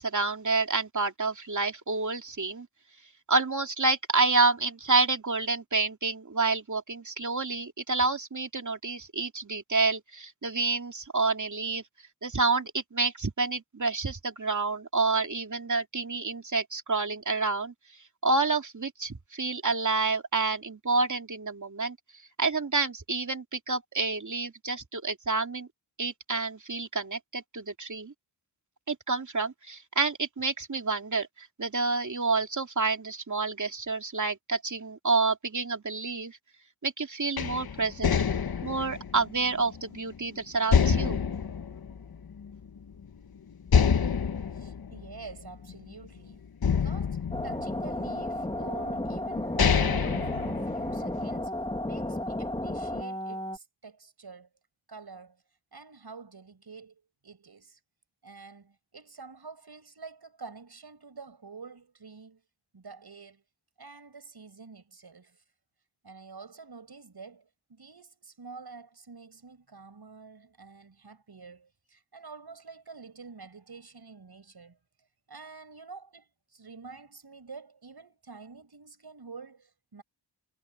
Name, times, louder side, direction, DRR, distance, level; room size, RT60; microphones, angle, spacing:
voice 1, 0.0-2.7 3.3-11.8 12.2-17.7 18.2-22.0 22.4-25.7 26.0-28.1 28.9-36.4 36.8-38.2 38.6-41.2, right 3 dB, 40° right, 2.9 m, -28 dB
sound 1, 37.4-40.2 40.7-42.6 43.0-43.1 43.7-46.1 46.6-48.2 48.9-49.0 49.4-51.2, left 7 dB, 55° left, 1.0 m, -27 dB
voice 2, 44.5-51.5 51.8-54.5 54.9-55.4 55.7-57.8 58.2-62.4 62.7-63.4 63.8-65.4 66.0-74.8 75.3-80.0, right 4 dB, 60° right, 8.0 m, -48 dB
sound 2, 47.3-53.6, left 1 dB, 10° left, 2.0 m, -33 dB
wide cardioid pair, 120°, 44 cm